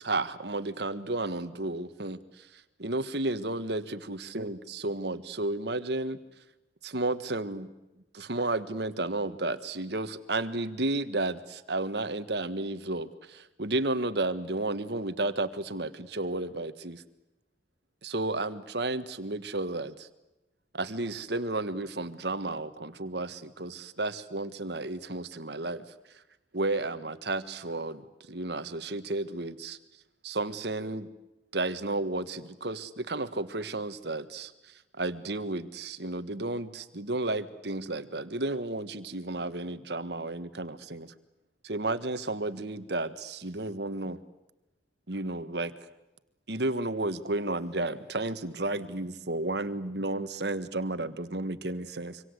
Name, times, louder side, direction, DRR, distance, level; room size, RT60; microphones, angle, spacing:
voice 1, 0.0-6.2 6.8-7.7 8.1-17.0 18.0-20.1 20.7-25.9 26.5-29.8 30.2-31.1 31.5-41.1 41.6-44.2 45.1-45.7 46.5-52.2, right 2 dB, 60° right, 12 dB, 1.6 m, -32 dB
26.0 x 25.5 x 8.0 m, 0.96 s
head